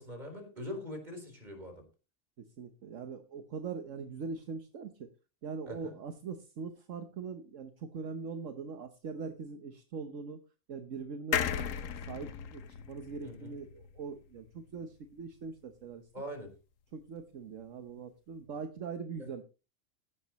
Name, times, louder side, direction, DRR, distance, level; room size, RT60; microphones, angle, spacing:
voice 1, 0.0-1.8 5.7-5.9 13.2-13.5 16.1-16.5 19.2-19.3, left 1 dB, 35° right, 4 dB, 4.4 m, -42 dB
voice 2, 2.4-5.1 5.4-10.4 10.7-12.6 12.9-16.1 16.9-19.4, right 5 dB, 70° right, 7 dB, 1.3 m, -42 dB
sound 1, 11.3-14.8 15.2-15.3 15.5-15.6, left 8 dB, 75° left, 1.2 m, -36 dB
15.5 x 11.0 x 3.1 m, 0.31 s
omnidirectional pair, 1.4 m